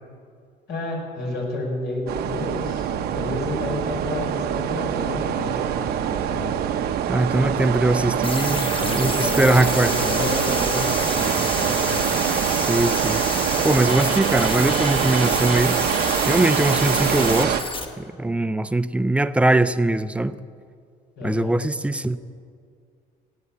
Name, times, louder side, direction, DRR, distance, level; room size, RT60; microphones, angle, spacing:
voice 1, 0.7-6.6 8.8-12.0 21.2-21.6, left 2 dB, 75° left, -1 dB, 5.0 m, -30 dB
sound 1, 2.1-17.6, right 9 dB, 70° right, 0.8 m, -24 dB
voice 2, 7.1-9.9 12.5-13.2 13.6-15.8 16.2-17.6 18.0-20.3 21.2-22.2, right 2 dB, 5° right, 14 dB, 0.5 m, -21 dB
sound 2, 8.2-17.9, left 3 dB, 30° left, 1.4 m, -29 dB
17.5 x 7.8 x 8.5 m, 2.2 s
cardioid pair, 110°, 17 cm